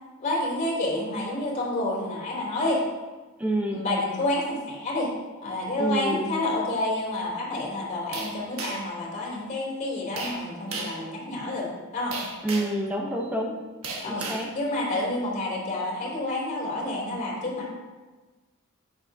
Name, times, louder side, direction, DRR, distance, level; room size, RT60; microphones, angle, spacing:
voice 1, 0.2-2.8 3.7-5.1 5.4-12.1 14.0-14.2 14.5-17.7, left 2 dB, 35° left, -6 dB, 3.0 m, -29 dB
voice 2, 3.4-3.8 5.8-6.3 12.4-13.6 14.0-14.5, right 1 dB, 5° right, 0 dB, 0.7 m, -28 dB
sound 1, 8.1-9.0 10.2-10.4 10.7-11.0 12.1-12.8 13.8-14.5, right 3 dB, 80° right, 1.4 m, -34 dB
10.5 x 8.4 x 2.7 m, 1.3 s
head